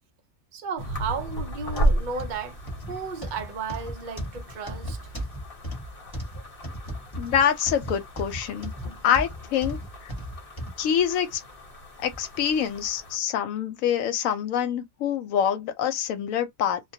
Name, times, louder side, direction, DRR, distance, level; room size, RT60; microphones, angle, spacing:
voice 1, 0.5-2.6 2.9-5.0, right 5 dB, 55° right, 0.5 m, -34 dB
sound 1, 0.8-13.2, right 1 dB, 50° left, 1.0 m, -34 dB
sound 2, 1.7-10.8 11.3-11.5 12.1-12.2, equal, 20° left, 1.0 m, -35 dB
voice 2, 7.2-8.7 9.0-10.1 10.8-11.4 12.0-16.8, left 9 dB, 85° left, 1.0 m, -25 dB
2.2 x 2.2 x 2.6 m
omnidirectional pair, 1.4 m